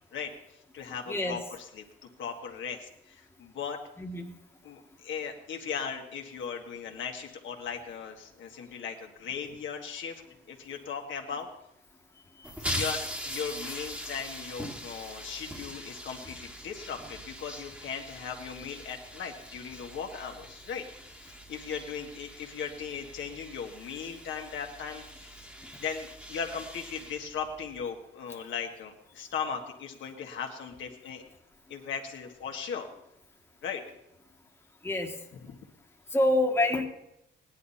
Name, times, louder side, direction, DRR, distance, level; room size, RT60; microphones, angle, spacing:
voice 1, 0.1-3.8 4.6-10.2 10.5-11.5 12.6-25.4 25.8-31.2 31.7-32.9 33.6-33.8 35.3-35.5, left 6 dB, 70° left, 2 dB, 1.7 m, -38 dB
voice 2, 4.0-4.3 34.8-35.1 36.1-36.8, left 1 dB, 10° left, 2 dB, 1.6 m, -26 dB
sound 1, 12.4-27.8, equal, 5° right, 1.6 m, -41 dB
16.5 x 10.5 x 4.2 m, 0.82 s
cardioid pair, 90°, 20 cm